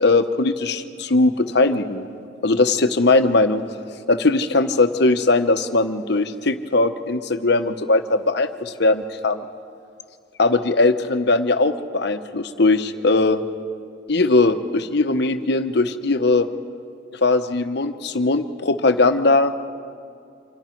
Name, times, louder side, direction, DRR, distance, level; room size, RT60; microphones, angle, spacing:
voice 1, 0.0-2.1 2.4-3.6 4.1-9.4 10.4-13.4 14.1-16.5 17.2-19.5, left 3 dB, 65° left, 9 dB, 1.0 m, -19 dB
28.0 x 26.0 x 4.6 m, 2.4 s
head